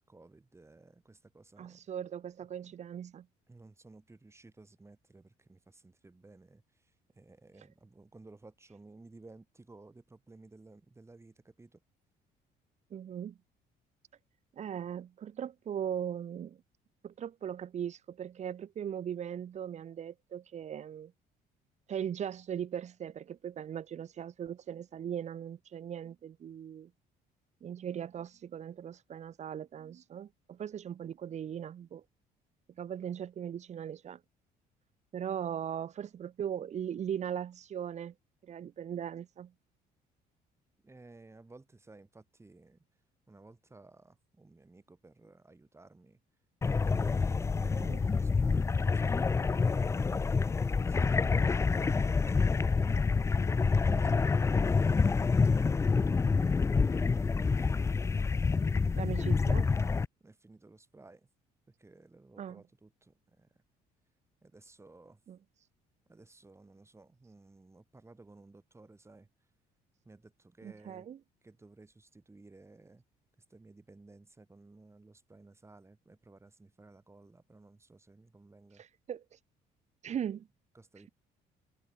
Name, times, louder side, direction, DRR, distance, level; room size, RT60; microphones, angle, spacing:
voice 1, 0.0-1.8 2.6-2.7 3.5-11.8 40.8-42.9 43.3-46.2 46.6-52.6 53.5-55.4 56.6-57.6 60.2-61.3 61.7-63.6 64.4-65.2 66.1-69.3 70.0-71.1 71.4-73.0 73.4-78.8 80.2-80.3 80.7-81.1, right 3 dB, 15° right, 7.2 m, -57 dB
voice 2, 1.6-3.3 12.9-13.4 14.6-16.6 17.0-21.1 21.9-26.9 27.6-32.0 32.8-34.2 35.1-38.1 38.4-39.5 47.6-48.0 53.9-54.2 58.9-59.7 62.4-62.6 65.3-65.4 70.6-71.2 78.8-79.4 80.0-80.5, right 9 dB, 45° right, 0.9 m, -39 dB
sound 1, 46.6-60.1, left 4 dB, 15° left, 0.4 m, -27 dB
cardioid pair, 110°, 17 cm